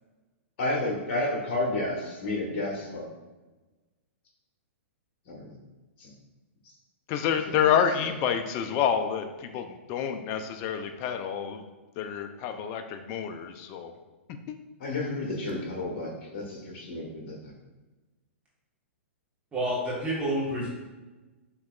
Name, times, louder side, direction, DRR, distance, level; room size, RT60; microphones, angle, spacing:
voice 1, 0.6-3.1 5.3-5.4 6.0-6.1 7.5-7.6 14.8-17.5, left 2 dB, 55° left, -2 dB, 1.2 m, -31 dB
voice 2, 7.1-11.6 12.0-13.9 14.5-14.6, left 8 dB, 35° left, 7 dB, 0.4 m, -28 dB
voice 3, 19.5-20.7, right 1 dB, 15° right, -6 dB, 1.2 m, -28 dB
5.6 x 3.1 x 2.4 m, 1.2 s
hypercardioid pair, 120°, 7 cm